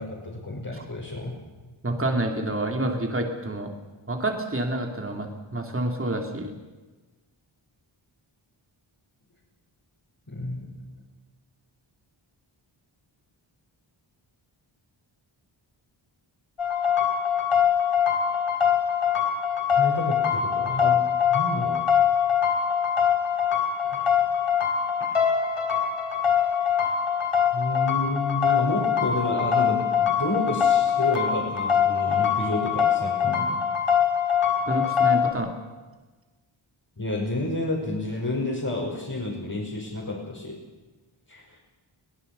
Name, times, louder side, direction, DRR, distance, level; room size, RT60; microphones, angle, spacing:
voice 1, 0.0-1.4 10.3-10.8 19.7-21.0 21.3-21.8 23.8-24.2 27.5-33.6 37.0-40.6 41.3-41.6, left 2 dB, 40° left, -5 dB, 5.6 m, -30 dB
voice 2, 1.8-3.7 4.1-6.5 34.7-35.5, right 1 dB, 25° right, 3 dB, 2.7 m, -28 dB
sound 1, 16.6-35.3, left 8 dB, 90° left, 3.0 m, -23 dB
23.0 x 18.5 x 6.8 m, 1.2 s
wide cardioid pair, 95°, 49 cm